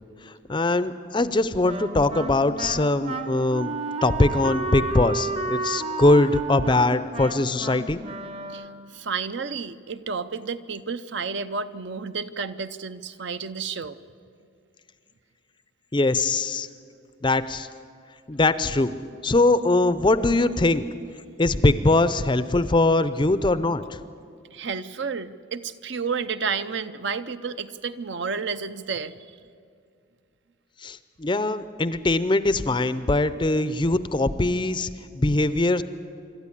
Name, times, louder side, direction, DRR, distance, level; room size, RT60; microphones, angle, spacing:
voice 1, 0.3-3.7 4.0-8.0 15.9-16.7 17.2-17.7 18.3-19.0 19.2-20.9 21.4-23.8 30.8-35.8, left 2 dB, 25° left, 14 dB, 0.5 m, -22 dB
Wind instrument woodwind instrument, 1.6-8.9, right 3 dB, 30° right, 0.9 m, -32 dB
voice 2, 8.5-14.0 24.5-29.2, right 5 dB, 60° right, 12 dB, 0.7 m, -31 dB
25.5 x 13.0 x 9.9 m, 2.4 s
head